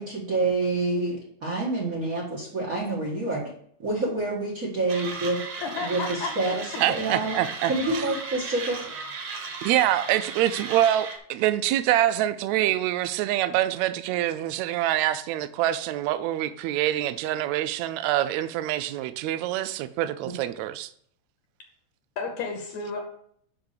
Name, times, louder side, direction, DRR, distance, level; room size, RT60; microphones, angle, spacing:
voice 1, 0.0-3.4 3.8-5.4 5.8-7.4 7.7-8.8, right 2 dB, 40° right, 1.4 m, -27 dB
Mechanisms, 4.9-11.2, right 4 dB, 60° right, 2.1 m, -36 dB
voice 2, 5.6-6.3 22.2-23.0, left 4 dB, 75° left, 2.3 m, -31 dB
voice 3, 6.8-7.7 9.6-20.9, right 13 dB, 80° right, 1.8 m, -25 dB
5.9 x 5.6 x 6.6 m
omnidirectional pair, 3.4 m